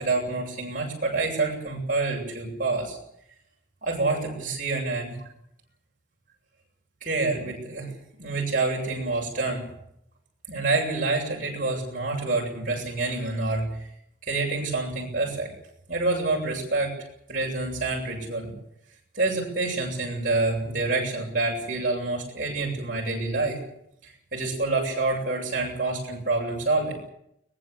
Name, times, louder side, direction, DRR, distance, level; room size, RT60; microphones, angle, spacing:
voice 1, 0.0-3.0 3.8-5.2 7.0-7.9 8.2-9.6 10.5-13.9 14.2-15.5 15.9-16.9 17.3-18.5 19.1-23.6 24.0-27.0, right 3 dB, 45° right, -2 dB, 7.8 m, -27 dB
22.5 x 20.5 x 8.4 m, 0.77 s
head